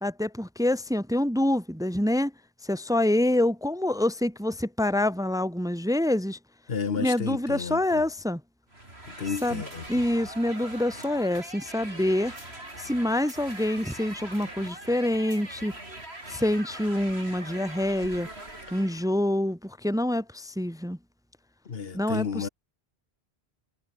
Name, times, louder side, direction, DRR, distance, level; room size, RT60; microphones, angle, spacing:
voice 1, 0.0-2.3 2.6-6.4 7.0-8.4 9.4-9.6 9.9-12.4 12.8-15.7 16.3-18.3 18.7-21.0 21.9-22.5, left 1 dB, 5° right, 1.0 m, -26 dB
voice 2, 6.7-8.0 9.1-10.0 18.7-18.8 21.6-22.5, left 6 dB, 70° left, 1.5 m, -32 dB
sound 1, 8.7-19.1, right 1 dB, 85° right, 6.4 m, -42 dB
omnidirectional pair, 1.1 m